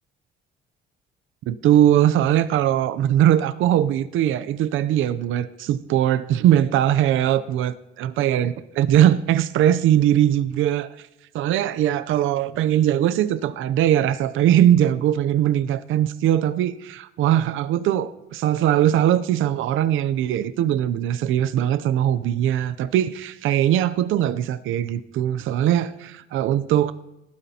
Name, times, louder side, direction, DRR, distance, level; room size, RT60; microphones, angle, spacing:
voice 1, 1.5-7.7 8.0-11.1 11.3-26.9, right 11 dB, 80° right, 0.5 m, -20 dB
19.0 x 12.5 x 2.8 m
cardioid pair, 90°, 20 cm